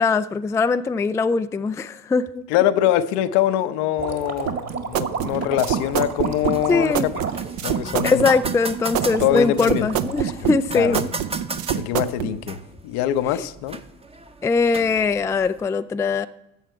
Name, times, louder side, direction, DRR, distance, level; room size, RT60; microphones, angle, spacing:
voice 1, 0.0-2.4 6.7-7.1 8.0-11.1 14.4-16.3, left 4 dB, 10° left, 0.3 m, -21 dB
voice 2, 2.5-7.2 7.6-8.2 9.1-9.9 10.2-10.3 10.7-11.1 11.7-13.8, left 12 dB, 70° left, 0.8 m, -23 dB
sound 1, 4.0-11.3, right 5 dB, 35° right, 1.9 m, -32 dB
sound 2, 4.5-12.3, right 10 dB, 55° right, 0.8 m, -26 dB
sound 3, 5.6-15.7, right 3 dB, 15° right, 0.8 m, -36 dB
14.0 x 7.4 x 4.5 m
hypercardioid pair, 60°, 42 cm